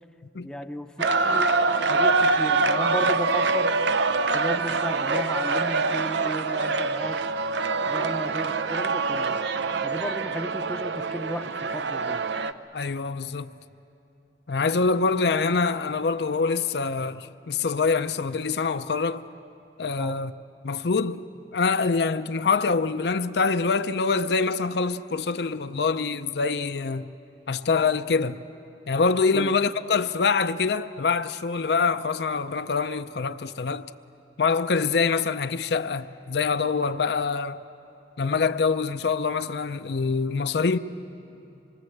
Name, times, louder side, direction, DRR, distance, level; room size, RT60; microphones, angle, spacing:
voice 1, 0.4-0.9 1.2-1.6 1.9-3.7 4.3-7.2 7.9-9.4 9.8-12.2 20.0-20.2 29.3-29.5, equal, 5° left, 0.6 m, -34 dB
sound 1, 1.0-12.5, right 3 dB, 80° right, 0.7 m, -25 dB
voice 2, 12.7-13.5 14.5-19.2 19.8-20.3 20.6-21.2 21.5-27.1 27.5-28.4 28.9-33.9 34.4-37.6 38.2-40.8, left 4 dB, 65° left, 0.6 m, -25 dB
26.0 x 23.0 x 8.0 m
head